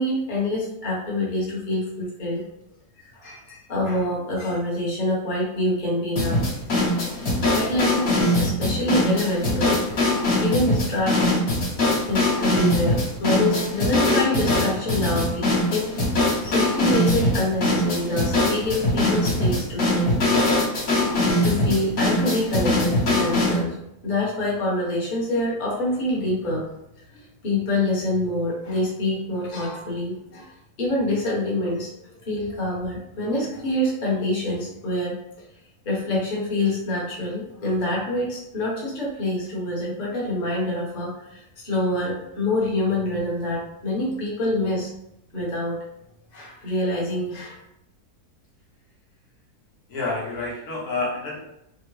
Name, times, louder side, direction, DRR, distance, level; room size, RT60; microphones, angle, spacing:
voice 1, 0.0-2.4 3.0-6.4 7.5-10.0 10.4-11.3 12.1-15.9 16.4-20.2 21.4-23.7 24.0-26.6 27.1-30.5 30.8-31.9 32.2-35.2 35.8-44.9 45.3-45.8 46.3-47.6, left 1 dB, 35° left, -5 dB, 1.0 m, -26 dB
sound 1, 6.2-23.6, left 1 dB, 55° left, 1.3 m, -22 dB
voice 2, 49.9-51.4, left 3 dB, 75° left, -4 dB, 1.3 m, -28 dB
3.5 x 2.0 x 3.1 m, 0.80 s
omnidirectional pair, 1.7 m